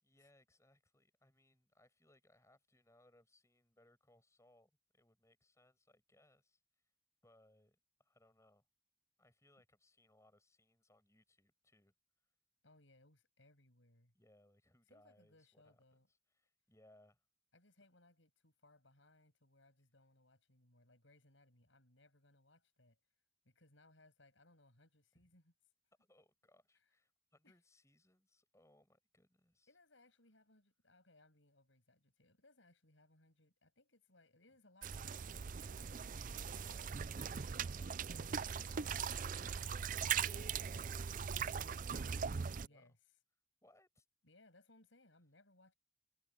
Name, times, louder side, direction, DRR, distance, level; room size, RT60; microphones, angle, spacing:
voice 1, 0.0-6.6 7.2-8.7 9.2-11.9 14.1-16.0 16.3-17.2 25.1-25.3 26.0-29.7 36.6-37.1 37.4-42.0 42.3-43.0 43.6-44.1, left 1 dB, 15° left, 7.6 m, -71 dB
voice 2, 12.6-14.1 14.9-16.1 17.5-23.0 23.5-25.5 26.7-26.9 27.4-27.5 29.7-36.4 38.2-38.8 42.6-43.1 44.2-45.7, left 2 dB, 75° left, 7.1 m, -68 dB
sound 1, 34.8-42.7, right 7 dB, 40° right, 0.5 m, -40 dB
head